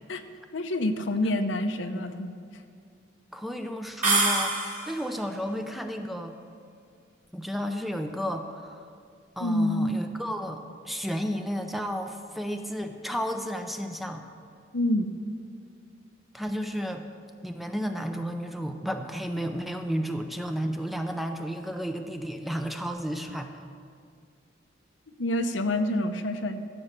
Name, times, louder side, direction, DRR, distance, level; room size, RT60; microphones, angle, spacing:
voice 1, 0.5-2.3 9.4-9.9 14.7-15.1 25.2-26.6, left 1 dB, 85° left, 7 dB, 0.8 m, -27 dB
voice 2, 3.3-4.6 4.9-6.3 7.3-8.8 9.4-14.2 16.3-17.0 17.4-23.5, equal, ahead, 5 dB, 0.6 m, -32 dB
sound 1, 4.0-5.1, right 3 dB, 40° right, 2.8 m, -25 dB
14.5 x 7.1 x 6.7 m, 2.2 s
head